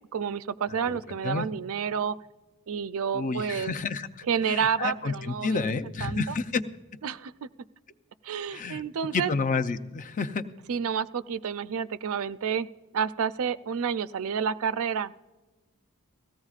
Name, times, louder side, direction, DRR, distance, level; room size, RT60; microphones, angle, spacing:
voice 1, 0.1-2.2 2.7-3.7 4.3-6.3 7.0-7.5 8.2-9.3 10.7-12.7 12.9-15.2, right 7 dB, 65° right, 15 dB, 0.4 m, -30 dB
voice 2, 3.1-6.6 8.5-8.8 9.1-10.4, left 4 dB, 35° left, 9 dB, 0.5 m, -30 dB
18.0 x 15.5 x 2.4 m, 1.2 s
head